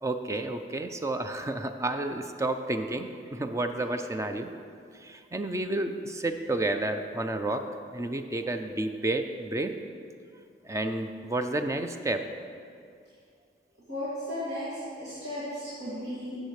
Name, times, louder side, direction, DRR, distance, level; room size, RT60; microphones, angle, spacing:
voice 1, 0.0-4.5 4.9-7.6 7.9-9.7 10.6-12.2, right 2 dB, 15° right, 7 dB, 0.4 m, -31 dB
voice 2, 13.9-16.4, left 1 dB, 80° right, -12 dB, 2.5 m, -35 dB
13.5 x 7.4 x 3.2 m, 2.3 s
head